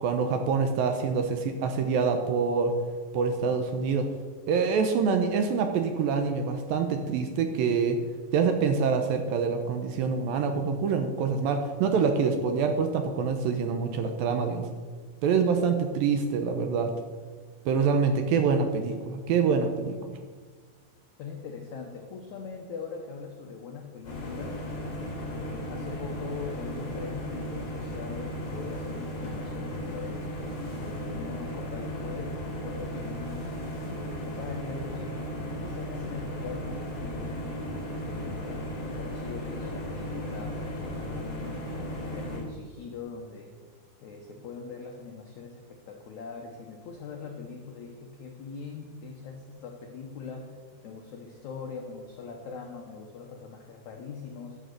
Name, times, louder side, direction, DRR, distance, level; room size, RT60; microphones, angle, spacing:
voice 1, 0.0-2.8 3.1-4.1 4.5-8.0 8.3-14.7 15.2-16.9 17.7-20.2, right 5 dB, 75° right, 6 dB, 2.3 m, -26 dB
voice 2, 21.2-24.6 25.2-30.3 30.8-33.5 33.8-43.6 44.0-50.6 50.8-54.6, left 5 dB, 80° left, 2 dB, 1.7 m, -42 dB
sound 1, 24.0-42.4, equal, 40° left, 4.1 m, -35 dB
11.0 x 7.9 x 6.5 m, 1.5 s
omnidirectional pair, 4.7 m